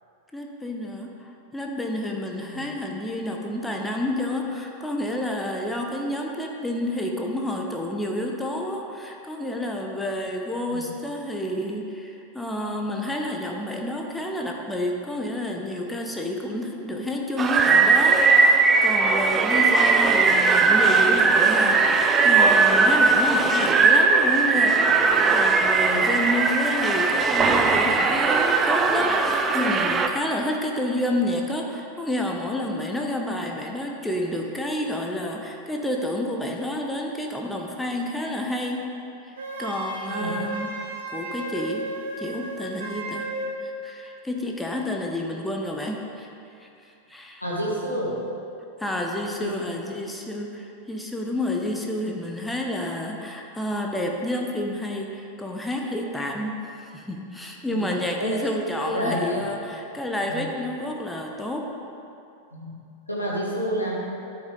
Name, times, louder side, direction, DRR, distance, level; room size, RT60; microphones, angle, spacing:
voice 1, 0.3-38.9 39.2-40.7 41.1-41.9 42.2-43.3 43.6-46.3 46.6-47.4 48.8-61.7, left 1 dB, 5° left, 1 dB, 0.9 m, -29 dB
sound 1, 17.4-30.1, right 4 dB, 20° right, 0.6 m, -19 dB
Wind instrument woodwind instrument, 39.4-43.6, right 1 dB, 60° right, 1.5 m, -33 dB
voice 2, 47.4-48.2 49.4-49.5 57.7-57.9 58.2-58.4 58.8-59.4 60.3-60.4 62.5-62.7 63.1-63.9, equal, 85° left, -5 dB, 1.8 m, -29 dB
13.0 x 5.7 x 3.9 m, 2.7 s
figure-of-eight pair, 90°, 0 cm